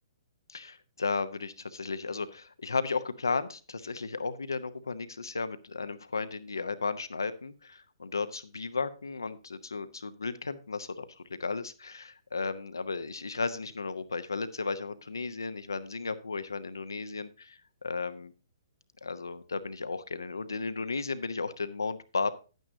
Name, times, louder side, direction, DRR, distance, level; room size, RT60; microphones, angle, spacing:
voice 1, 0.5-18.3 19.0-22.3, left 4 dB, 75° left, 12 dB, 0.9 m, -34 dB
11.0 x 9.2 x 2.7 m, 0.33 s
figure-of-eight pair, 120°, 2 cm